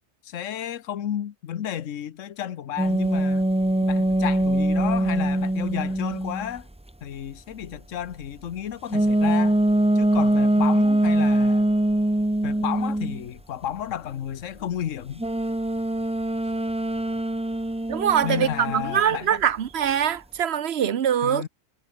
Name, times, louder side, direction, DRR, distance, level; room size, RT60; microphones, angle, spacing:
voice 1, 0.2-3.4 3.9-6.7 7.0-9.6 9.9-11.7 12.4-15.2 18.2-19.4 21.2-21.5, left 10 dB, 75° left, 1.3 m, -32 dB
sound 1, 2.8-6.6 8.9-13.2 15.2-19.0, right 1 dB, 5° right, 0.5 m, -23 dB
voice 2, 17.9-21.5, right 9 dB, 60° right, 1.1 m, -23 dB
omnidirectional pair, 1.3 m